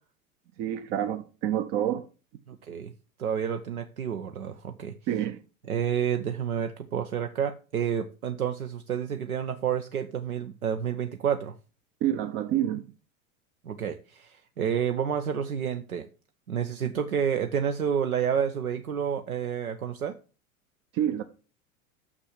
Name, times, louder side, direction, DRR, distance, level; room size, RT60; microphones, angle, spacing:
voice 1, 0.6-2.1 5.1-5.4 12.0-12.8 20.9-21.2, right 11 dB, 30° right, 0.6 m, -28 dB
voice 2, 2.5-2.9 3.2-4.9 5.7-11.5 13.6-16.1 16.5-20.2, right 8 dB, 75° right, 0.9 m, -29 dB
6.6 x 6.2 x 7.2 m
figure-of-eight pair, 85°, 44 cm